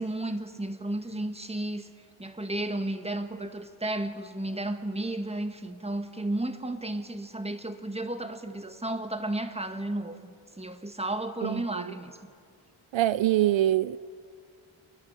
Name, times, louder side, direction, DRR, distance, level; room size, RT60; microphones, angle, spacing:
voice 1, 0.0-1.9 2.2-12.2, right 1 dB, 10° right, 1.7 m, -33 dB
voice 2, 11.4-11.8 12.9-14.0, right 13 dB, 65° right, 0.5 m, -24 dB
29.5 x 11.5 x 8.9 m
cardioid pair, 70°, 50 cm